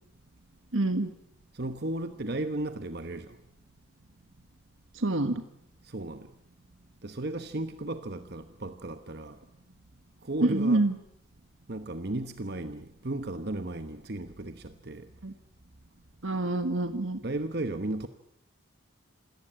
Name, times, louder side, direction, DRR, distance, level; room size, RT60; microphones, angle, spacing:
voice 1, 0.7-1.1 4.9-5.4 10.5-10.9 15.2-15.3 16.2-17.2, right 2 dB, 70° right, 1.5 m, -27 dB
voice 2, 1.5-3.4 5.9-6.3 7.0-9.4 10.2-10.9 11.7-15.1 17.2-18.1, right 2 dB, 50° right, 1.1 m, -35 dB
27.5 x 18.0 x 8.8 m
head